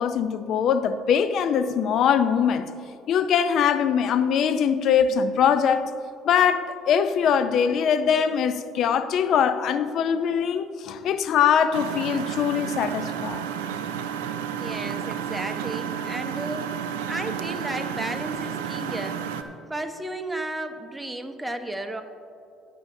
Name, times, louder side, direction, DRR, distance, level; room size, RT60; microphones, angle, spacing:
voice 1, 0.0-2.7 3.1-5.9 6.2-13.4, left 7 dB, 60° left, 11 dB, 0.5 m, -22 dB
Engine, 11.7-19.4, right 8 dB, 85° right, 0.4 m, -31 dB
voice 2, 14.6-16.7 17.1-19.2 19.7-22.0, right 1 dB, 10° right, 6 dB, 1.0 m, -33 dB
19.5 x 6.7 x 2.7 m, 2.6 s
hypercardioid pair, 60°, 0 cm